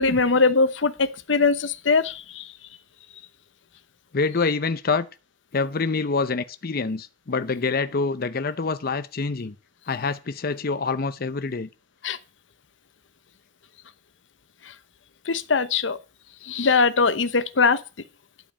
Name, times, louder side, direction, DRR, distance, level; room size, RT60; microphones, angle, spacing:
voice 1, 0.0-2.5 12.0-12.2 15.3-16.0 16.4-17.8, left 4 dB, 85° left, 0.9 m, -21 dB
voice 2, 4.1-5.1 5.5-9.6 9.9-11.7, left 4 dB, 55° left, 0.7 m, -26 dB
12.0 x 5.2 x 8.5 m
head